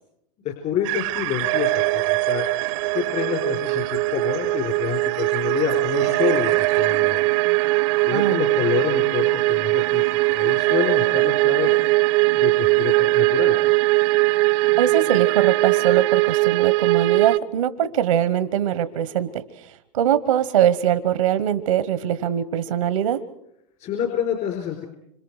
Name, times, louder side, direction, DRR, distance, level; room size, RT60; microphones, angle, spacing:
voice 1, 0.4-2.5 2.9-7.3 8.1-10.0 10.3-11.8 12.4-13.5 23.8-24.9, left 9 dB, 45° left, 3 dB, 4.5 m, -27 dB
sound 1, 0.8-17.4, right 24 dB, 65° right, 0.8 m, -20 dB
voice 2, 14.8-19.4 19.9-23.2, right 10 dB, 85° right, 14 dB, 1.1 m, -22 dB
27.0 x 26.5 x 4.9 m, 0.78 s
hypercardioid pair, 100°, 17 cm